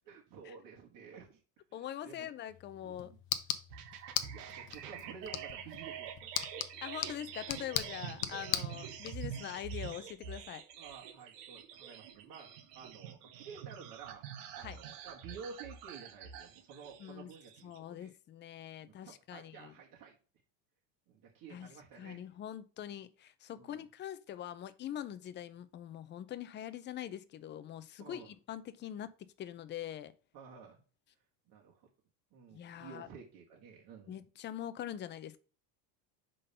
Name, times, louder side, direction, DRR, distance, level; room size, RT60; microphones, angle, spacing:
voice 1, 0.0-1.4 1.8-2.3 2.7-3.2 4.3-6.3 8.6-8.8 10.8-14.2 14.6-17.7 18.0-18.2 18.8-20.2 21.1-22.2 23.6-23.9 28.0-28.3 30.3-30.8 31.5-31.9 32.3-34.2, right 6 dB, 45° right, 1.6 m, -52 dB
voice 2, 1.7-3.1 6.8-10.6 14.6-14.8 17.0-17.3 17.6-19.7 21.5-21.7 22.0-29.1 29.4-30.1 32.5-33.1 34.1-35.4, left 11 dB, 25° left, 0.4 m, -43 dB
sound 1, 2.5-9.1, left 12 dB, 55° left, 0.8 m, -40 dB
sound 2, 3.7-17.8, right 8 dB, 85° right, 1.2 m, -46 dB
5.3 x 3.8 x 5.4 m
supercardioid pair, 135°, 46 cm